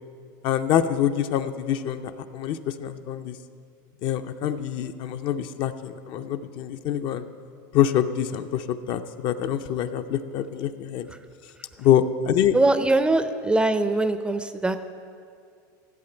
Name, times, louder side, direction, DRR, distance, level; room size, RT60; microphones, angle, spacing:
voice 1, 0.4-3.3 4.0-7.2 7.7-11.1 11.8-12.5, left 10 dB, 50° left, 9 dB, 0.5 m, -25 dB
voice 2, 12.5-14.8, right 2 dB, 10° right, 10 dB, 0.4 m, -22 dB
14.5 x 7.6 x 4.4 m, 2.3 s
supercardioid pair, 120°, 11 cm